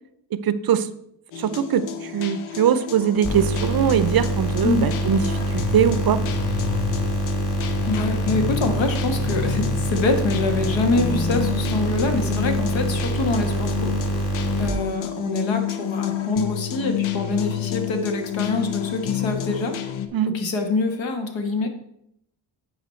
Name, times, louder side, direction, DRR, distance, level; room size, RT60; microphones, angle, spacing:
voice 1, 0.3-0.9 1.4-6.2 20.1-20.3, right 9 dB, 50° right, 14 dB, 0.6 m, -22 dB
sound 1, 1.3-20.1, left 10 dB, 85° left, 0.8 m, -30 dB
sound 2, 3.2-14.7, right 1 dB, 40° left, 2.8 m, -25 dB
voice 2, 7.8-14.2 14.6-19.8 20.3-21.7, left 3 dB, 70° left, 5 dB, 1.4 m, -25 dB
9.4 x 4.3 x 4.4 m, 0.75 s
cardioid pair, 80°, 47 cm